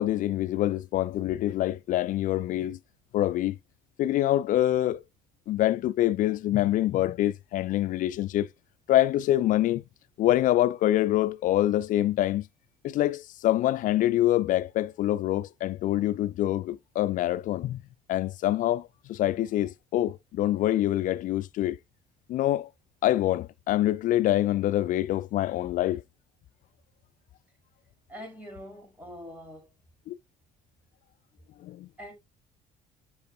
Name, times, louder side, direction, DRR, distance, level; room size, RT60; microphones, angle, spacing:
voice 1, 0.0-2.8 3.1-3.6 4.0-5.0 5.5-8.5 8.9-9.8 10.2-12.5 12.8-17.8 18.1-21.8 22.3-22.7 23.0-26.0 30.1-30.2 31.6-31.9, left 14 dB, 40° left, 0.4 m, -25 dB
voice 2, 28.1-29.7 32.0-32.1, equal, 10° right, 5.1 m, -43 dB
11.0 x 4.4 x 2.4 m
figure-of-eight pair, 55°, 21 cm